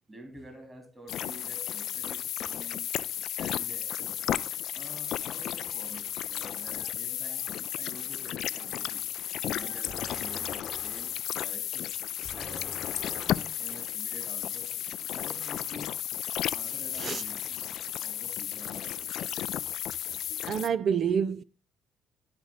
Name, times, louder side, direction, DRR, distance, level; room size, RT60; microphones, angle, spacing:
voice 1, 0.1-2.9 3.4-4.2 4.7-7.5 7.8-9.1 9.4-11.9 12.3-14.7 15.1-16.0 16.5-17.6 18.0-19.0, right 1 dB, 20° right, 3.3 m, -48 dB
sound 1, 1.1-20.7, left 11 dB, 65° left, 0.4 m, -34 dB
sound 2, 9.9-11.3 12.2-13.7 15.1-15.7 16.9-17.5, left 3 dB, 30° left, 1.0 m, -47 dB
voice 2, 20.3-21.4, right 7 dB, 50° right, 0.5 m, -28 dB
11.5 x 5.2 x 4.0 m
hypercardioid pair, 55°, 0 cm